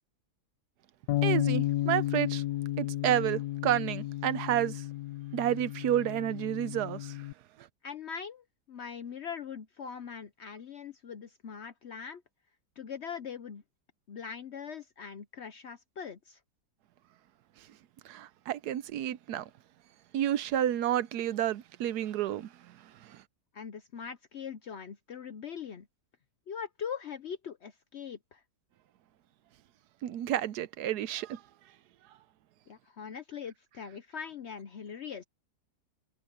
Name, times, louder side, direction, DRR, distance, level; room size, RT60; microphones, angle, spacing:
Bass guitar, 1.1-7.3, left 15 dB, 75° left, 1.2 m, -33 dB
voice 1, 1.2-2.4 2.8-4.8 5.3-7.3 7.6-7.7 18.0-19.5 20.1-23.2 30.0-31.4, right 11 dB, 80° right, 1.2 m, -30 dB
voice 2, 7.8-12.2 12.8-13.6 14.1-16.4 23.5-25.9 26.5-28.4 32.7-35.2, left 7 dB, 55° left, 0.8 m, -41 dB
omnidirectional pair, 1.8 m